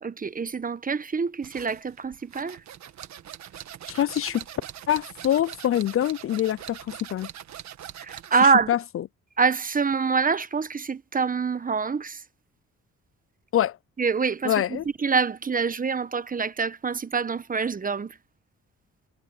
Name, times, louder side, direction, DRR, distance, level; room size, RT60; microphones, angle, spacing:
voice 1, 0.0-2.6 8.0-8.7 9.4-12.2 14.0-18.2, right 5 dB, 30° right, 1.1 m, -25 dB
sound 1, 1.4-8.4, right 10 dB, 70° right, 1.7 m, -42 dB
voice 2, 3.9-4.4 4.9-7.3 8.4-8.8 13.5-13.8 14.4-14.8, left 11 dB, 50° left, 0.5 m, -25 dB
cardioid pair, 85°, 29 cm